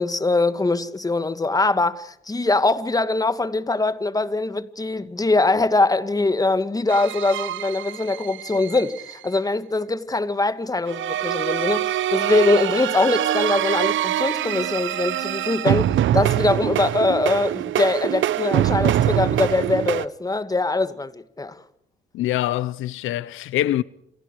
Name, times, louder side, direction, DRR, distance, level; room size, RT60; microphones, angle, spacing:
voice 1, 0.0-21.6, left 3 dB, 20° left, 2.0 m, -22 dB
sound 1, 6.9-9.1 10.9-20.1, right 12 dB, 75° right, 0.9 m, -24 dB
voice 2, 22.1-23.8, left 14 dB, 85° left, 0.9 m, -24 dB
28.5 x 28.0 x 4.8 m
cardioid pair, 90°, 20 cm